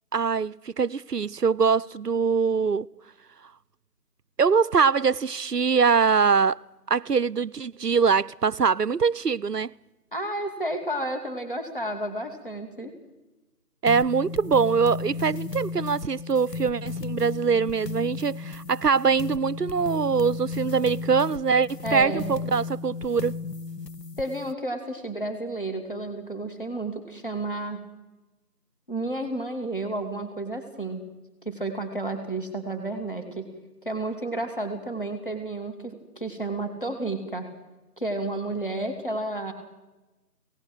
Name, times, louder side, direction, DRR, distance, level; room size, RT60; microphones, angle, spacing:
voice 1, 0.1-2.9 4.4-6.6 6.9-9.7 13.8-23.4, right 5 dB, 75° right, 0.7 m, -23 dB
voice 2, 10.1-12.9 21.8-22.3 24.2-27.8 28.9-31.0 31.4-33.5 33.8-37.5 38.0-39.5, right 2 dB, 30° left, 2.5 m, -31 dB
sound 1, 13.9-24.5, left 4 dB, 85° left, 1.0 m, -35 dB
25.0 x 18.5 x 7.9 m
figure-of-eight pair, 180°, 48 cm